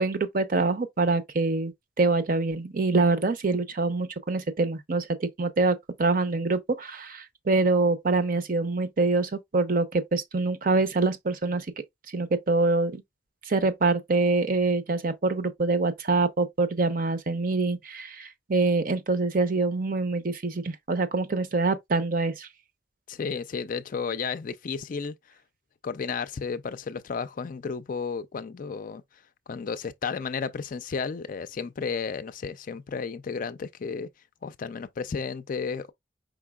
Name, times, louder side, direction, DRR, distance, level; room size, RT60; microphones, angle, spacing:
voice 1, 0.0-11.7 12.1-13.0 13.5-22.5, right 3 dB, 50° right, 0.7 m, -25 dB
voice 2, 23.1-25.1 25.8-29.0 29.5-34.1 34.4-35.9, left 5 dB, 45° left, 0.4 m, -33 dB
5.1 x 3.7 x 2.3 m
head